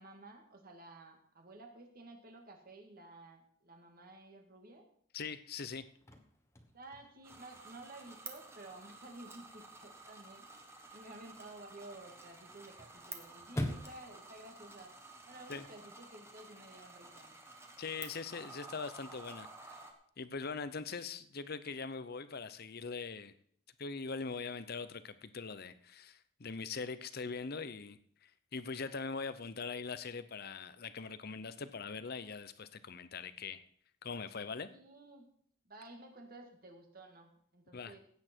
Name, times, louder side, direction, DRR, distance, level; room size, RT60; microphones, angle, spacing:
voice 1, 0.0-4.8 6.7-14.9 15.2-17.4 34.7-35.3 35.6-38.0, right 2 dB, 45° right, 4 dB, 2.1 m, -53 dB
voice 2, 5.1-5.8 15.5-15.7 17.8-19.9 20.2-23.3 23.8-33.6 34.0-34.7 37.7-37.9, left 4 dB, 50° left, 13 dB, 0.7 m, -42 dB
Chirp tweet / Car / Slam, 5.7-15.7, equal, 15° left, 1.3 m, -47 dB
sound 1, 7.2-19.9, right 3 dB, 15° right, 1.4 m, -52 dB
16.5 x 8.5 x 4.5 m, 0.62 s
head